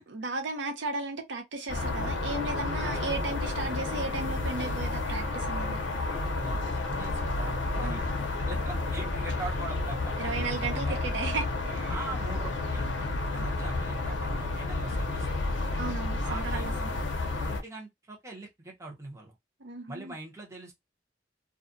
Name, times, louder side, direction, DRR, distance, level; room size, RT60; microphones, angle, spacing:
voice 1, 0.0-5.8 7.8-8.0 10.2-11.9 15.8-16.7 19.6-20.1, right 3 dB, 75° right, 0.6 m, -35 dB
sound 1, 1.7-17.6, left 2 dB, 80° left, 0.6 m, -31 dB
voice 2, 6.1-10.4 10.6-11.0 11.9-13.1 13.3-15.8 16.2-17.0 17.4-19.3 19.9-20.7, right 2 dB, 15° right, 0.8 m, -42 dB
2.4 x 2.1 x 2.5 m
head